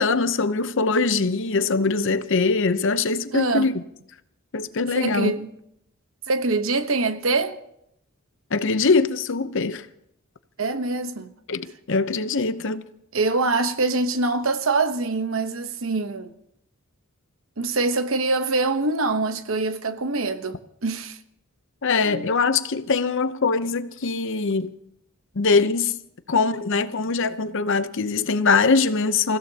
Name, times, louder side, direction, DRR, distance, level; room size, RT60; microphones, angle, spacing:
voice 1, 0.0-3.7 4.5-5.3 8.5-9.9 11.5-12.8 21.8-24.7 25.4-26.0 26.3-29.4, left 4 dB, 60° left, 0.8 m, -22 dB
voice 2, 3.3-3.7 4.9-5.5 6.3-7.6 10.6-11.3 13.1-16.3 17.6-21.2 22.0-22.3, right 3 dB, 70° right, 1.0 m, -24 dB
28.0 x 16.0 x 2.9 m
head